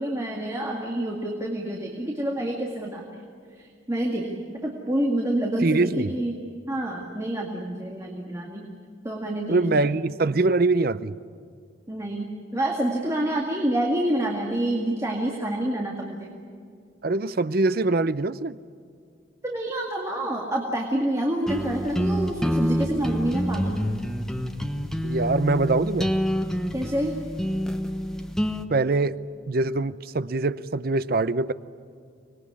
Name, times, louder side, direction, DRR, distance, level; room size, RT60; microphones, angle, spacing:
voice 1, 0.0-3.2 3.5-8.7 9.0-9.8 11.9-16.3 19.4-23.7 26.7-27.1, right 1 dB, 15° right, -1 dB, 2.1 m, -28 dB
voice 2, 5.6-6.1 9.5-11.2 17.0-18.6 25.0-26.1 28.7-29.1 29.5-31.5, right 3 dB, 50° right, 15 dB, 0.6 m, -23 dB
sound 1, 21.5-28.6, equal, 5° left, 1.0 m, -27 dB
24.5 x 20.0 x 9.6 m, 2.3 s
head